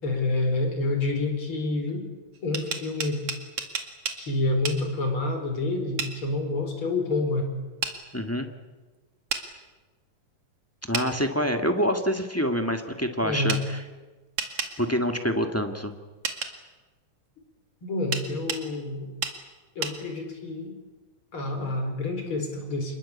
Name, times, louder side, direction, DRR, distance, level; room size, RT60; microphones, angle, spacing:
voice 1, 0.0-2.1 2.4-3.2 4.2-7.4 13.2-13.6 17.8-19.1 19.8-20.7 21.3-23.0, left 2 dB, 40° left, 4 dB, 5.3 m, -28 dB
sound 1, 2.3-4.2 4.7-4.8 6.0-6.1 7.8-8.0 9.3-9.5 10.9-11.1 13.5-13.6 14.4-14.7 16.2-16.5 18.1-18.6 19.2-19.4 19.8-20.0, right 6 dB, 50° right, 2.9 m, -30 dB
voice 2, 8.1-8.5 10.9-13.8 14.8-15.9, equal, 10° left, 5 dB, 0.7 m, -26 dB
27.5 x 21.5 x 8.6 m, 1.2 s
omnidirectional pair, 3.7 m